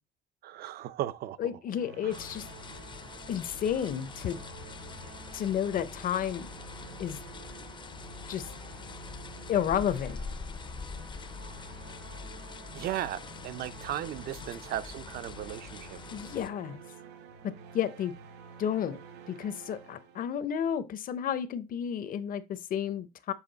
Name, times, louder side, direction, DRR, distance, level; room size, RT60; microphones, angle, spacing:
voice 1, 0.4-1.5 2.0-2.2 12.7-16.0, right 12 dB, 65° right, 0.5 m, -36 dB
voice 2, 1.4-2.5 3.3-4.4 5.3-6.5 7.0-7.2 8.3-8.5 9.5-10.2 16.1-16.8 17.4-18.1 18.6-19.0 19.3-23.3, left 9 dB, 55° left, 0.8 m, -31 dB
sound 1, 1.7-20.6, right 5 dB, 85° right, 0.9 m, -49 dB
sound 2, 2.1-16.5, left 5 dB, 30° left, 0.5 m, -44 dB
7.4 x 3.3 x 4.0 m
cardioid pair, 110°, 17 cm